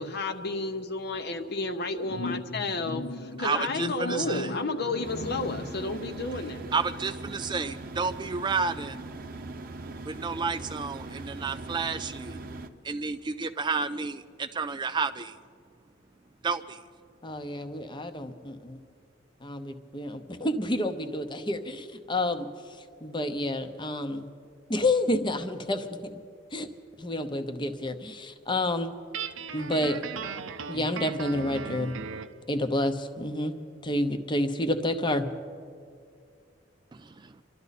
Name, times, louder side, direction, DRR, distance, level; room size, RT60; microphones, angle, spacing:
voice 1, 0.0-6.7, left 2 dB, 55° left, 8 dB, 0.8 m, -31 dB
voice 2, 3.4-4.5 6.7-9.0 10.1-12.4 12.8-15.3 16.4-16.8, right 4 dB, 25° right, 10 dB, 0.3 m, -31 dB
sound 1, 5.0-12.7, right 2 dB, 45° right, 0.7 m, -40 dB
voice 3, 17.2-18.8 19.4-22.5 23.0-24.2 24.7-25.9 26.5-26.7 27.0-28.9 29.5-30.0 30.7-31.9 32.5-33.6 33.8-35.3, left 1 dB, 25° left, 8 dB, 0.8 m, -29 dB
Guitar, 29.1-32.4, right 6 dB, 85° right, 0.6 m, -37 dB
27.0 x 12.0 x 4.1 m, 2.2 s
head